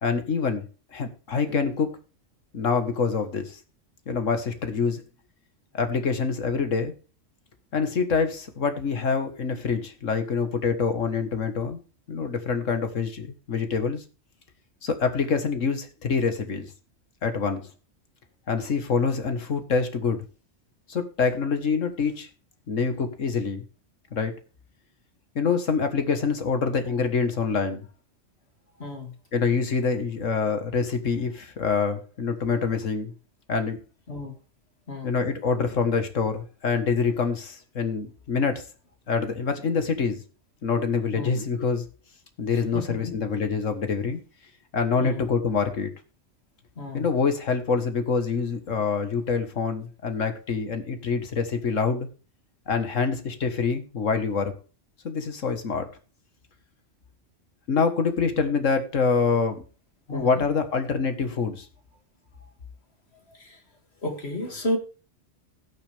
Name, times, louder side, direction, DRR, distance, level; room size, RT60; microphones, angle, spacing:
voice 1, 0.0-0.7 0.9-1.9 2.5-3.6 4.1-5.0 5.7-6.9 7.7-11.8 12.1-14.0 14.8-16.7 17.2-17.7 18.5-20.3 20.9-22.3 22.7-23.6 24.1-24.3 25.4-27.9 29.3-33.1 33.5-33.8 35.0-38.6 39.1-40.2 40.6-41.8 42.4-44.2 44.7-45.9 46.9-52.1 52.7-54.5 55.0-55.9 57.7-59.6 60.1-61.7, left 5 dB, 85° left, 8 dB, 1.9 m, -26 dB
voice 2, 28.8-29.2 34.1-34.3 34.9-35.2 41.1-41.4 42.5-43.2 45.0-45.3 46.8-47.1 60.1-60.4 63.3-63.6 64.0-64.8, left 1 dB, 55° left, 4 dB, 2.7 m, -32 dB
17.5 x 6.5 x 3.4 m, 0.34 s
omnidirectional pair, 1.3 m